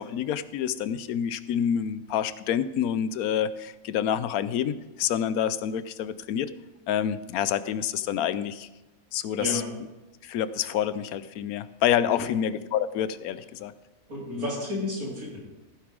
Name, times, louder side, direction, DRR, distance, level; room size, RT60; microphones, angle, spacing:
voice 1, 0.0-6.5 6.9-8.7 9.1-9.6 10.2-13.7, left 9 dB, 80° left, 14 dB, 1.1 m, -28 dB
voice 2, 14.1-15.4, left 2 dB, 80° right, -4 dB, 3.9 m, -31 dB
15.0 x 9.5 x 3.7 m, 1.0 s
omnidirectional pair, 1.5 m